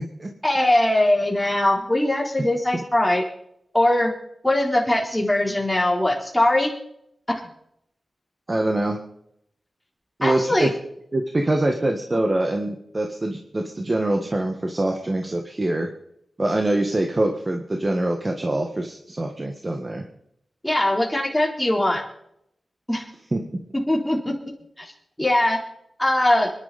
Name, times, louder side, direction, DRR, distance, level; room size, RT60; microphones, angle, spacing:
voice 1, 0.4-3.2 3.7-4.1 4.4-6.7 7.3-7.4 10.2-10.7 20.6-22.0 22.9-23.1 23.7-24.4 24.8-24.9 25.2-25.6 26.0-26.5, left 1 dB, 10° left, -1 dB, 4.0 m, -21 dB
voice 2, 8.5-9.0 10.2-10.7 11.1-15.9 16.4-20.0 23.3-23.4, right 1 dB, 30° right, 3 dB, 1.7 m, -24 dB
25.0 x 11.5 x 4.3 m, 0.75 s
wide cardioid pair, 75°, 0 cm